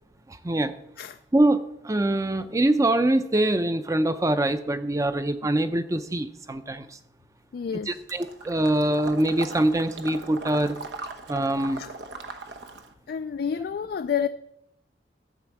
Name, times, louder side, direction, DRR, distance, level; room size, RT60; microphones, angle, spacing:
voice 1, 0.3-0.7 1.3-6.9 7.9-10.8 11.3-11.8, right 1 dB, 20° right, 0.6 m, -24 dB
voice 2, 7.5-8.0 11.8-11.9 13.1-14.3, left 7 dB, 60° left, 0.3 m, -29 dB
Water / Liquid, 8.1-12.9, right 3 dB, 80° right, 0.9 m, -39 dB
13.0 x 4.4 x 7.2 m
head